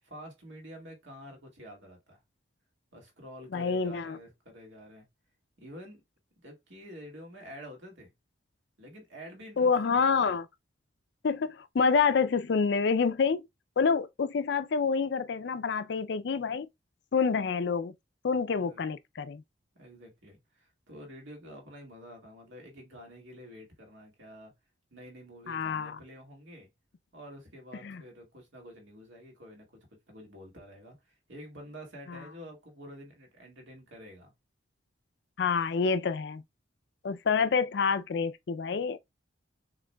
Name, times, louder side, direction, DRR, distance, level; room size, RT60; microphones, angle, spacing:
voice 1, 0.0-2.2 2.9-5.1 5.6-6.0 6.4-8.1 8.8-10.4 18.5-18.8 19.7-24.5 24.9-26.7 27.1-29.8 30.1-34.3, equal, 70° right, 1.9 m, -48 dB
voice 2, 3.5-4.2 9.6-10.5 11.2-13.4 13.8-16.7 17.1-17.9 18.2-19.4 25.5-26.0 27.8-28.0 35.4-36.4 37.0-39.0, left 5 dB, 60° left, 0.4 m, -27 dB
6.3 x 3.0 x 2.2 m
head